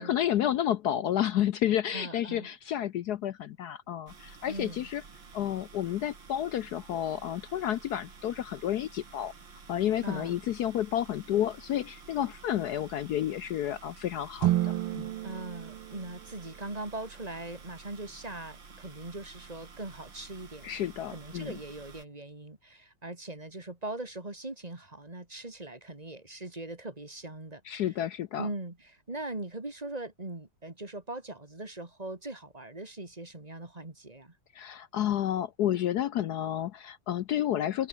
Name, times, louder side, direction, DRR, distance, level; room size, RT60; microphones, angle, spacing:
voice 1, 0.0-5.0 5.3-9.3 9.7-15.1 20.6-21.5 27.6-28.5 34.5-37.9, left 11 dB, 70° left, 1.0 m, -30 dB
voice 2, 1.9-2.5 4.5-4.9 10.0-10.4 15.2-20.7 21.1-27.6 28.4-34.3, right 2 dB, 20° right, 2.5 m, -40 dB
sound 1, 4.1-22.1, right 5 dB, 60° right, 3.9 m, -51 dB
sound 2, 14.4-16.8, right 14 dB, 85° right, 1.7 m, -31 dB
open air
omnidirectional pair, 2.3 m